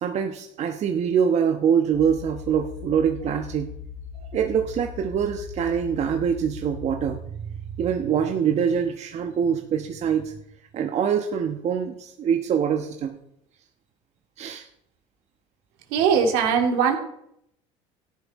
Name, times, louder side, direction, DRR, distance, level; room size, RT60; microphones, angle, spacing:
voice 1, 0.0-3.7 4.3-10.3 10.7-13.2 14.4-14.6, right 7 dB, 50° right, 4 dB, 1.2 m, -24 dB
sound 1, 1.9-7.2, left 7 dB, 60° left, 3.2 m, -39 dB
voice 2, 15.9-17.0, right 6 dB, 75° right, 3 dB, 2.5 m, -20 dB
14.5 x 10.5 x 4.2 m, 0.76 s
supercardioid pair, 90°, 15 cm